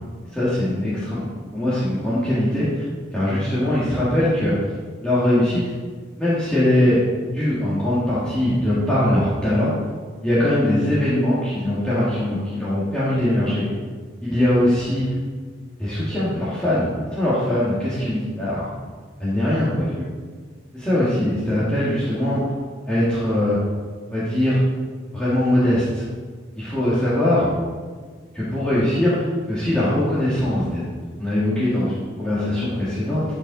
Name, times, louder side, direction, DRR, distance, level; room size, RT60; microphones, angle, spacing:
voice 1, 0.3-1.2 1.5-2.8 3.1-4.5 5.0-5.7 6.2-7.0 7.3-9.7 10.2-13.7 14.2-15.1 15.8-18.7 19.2-20.1 20.7-22.4 22.9-23.6 24.1-24.6 25.1-26.0 26.6-27.5 28.3-30.8 31.2-33.3, left 1 dB, 5° left, -11 dB, 1.8 m, -21 dB
12.0 x 5.5 x 3.9 m, 1.5 s
head